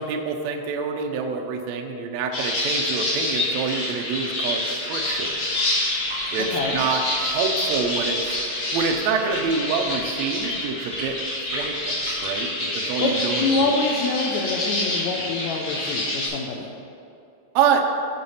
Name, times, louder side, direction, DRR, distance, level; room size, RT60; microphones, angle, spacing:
voice 1, 0.0-5.4 6.3-11.2 11.5-13.7 17.5-17.8, right 5 dB, 85° right, 3 dB, 1.5 m, -26 dB
sound 1, 2.3-16.3, left 1 dB, 40° left, 1.6 m, -27 dB
sound 2, 5.0-12.4, right 1 dB, 50° right, 2.2 m, -40 dB
voice 2, 6.4-6.8 13.0-16.7, left 3 dB, 85° left, -1 dB, 1.6 m, -26 dB
9.1 x 5.1 x 5.5 m, 2.6 s
omnidirectional pair, 4.0 m